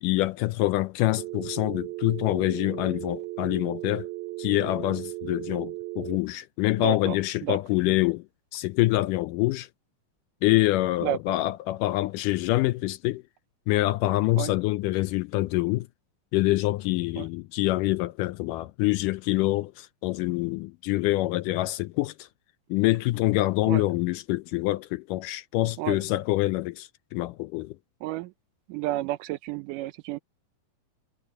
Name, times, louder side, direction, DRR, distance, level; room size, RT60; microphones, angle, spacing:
voice 1, 0.0-4.1 4.4-8.2 8.5-9.7 10.4-13.2 13.7-15.9 16.3-22.3 22.7-27.8, left 18 dB, 80° left, 1.9 m, -26 dB
Telephone, 1.2-6.2, right 18 dB, 60° right, 2.1 m, -36 dB
voice 2, 6.8-7.2 7.4-7.6 11.0-11.4 14.4-14.5 17.2-17.3 23.7-23.8 25.8-26.0 28.0-28.3 28.7-30.2, right 15 dB, 80° right, 2.1 m, -31 dB
omnidirectional pair, 4.1 m